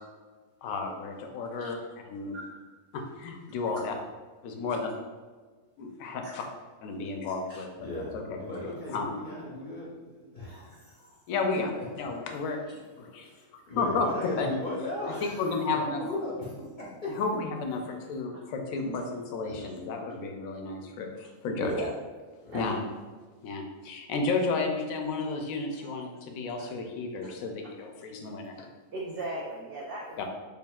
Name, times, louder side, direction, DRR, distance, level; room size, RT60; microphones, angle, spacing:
voice 1, 0.6-1.8 2.1-2.4 2.9-3.9 4.4-4.9 5.8-6.4 6.8-7.7 8.0-8.4 8.9-9.1 11.3-11.7 12.0-13.3 13.8-14.1 14.4-14.5 15.2-16.0 17.2-21.7 22.5-22.8 23.4-28.7 30.2-30.3, left 4 dB, 75° left, 3 dB, 1.0 m, -32 dB
voice 2, 7.8-11.2 11.7-11.9 12.4-12.5 13.2-17.2 17.8-17.9 19.4-19.7 21.6-21.9 22.4-22.7, left 2 dB, 45° left, -5 dB, 0.6 m, -37 dB
voice 3, 21.4-21.9 22.5-22.8 26.6-26.7 27.2-27.3 27.6-27.7 28.9-30.2, right 2 dB, 75° right, -2 dB, 0.5 m, -37 dB
5.2 x 2.5 x 2.3 m, 1.4 s
omnidirectional pair, 1.5 m